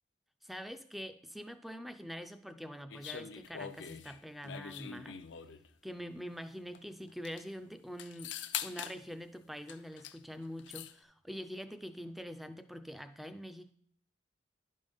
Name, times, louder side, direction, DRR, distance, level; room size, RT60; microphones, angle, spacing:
voice 1, 0.4-5.2 5.8-8.3 8.6-13.7, equal, ahead, 10 dB, 0.3 m, -45 dB
sound 1, 2.9-5.7 6.7-6.8 7.1-7.4 8.0-9.0 9.7-10.2 10.4-10.9, left 9 dB, 75° left, 0.5 m, -43 dB
11.0 x 5.4 x 3.5 m, 0.63 s
head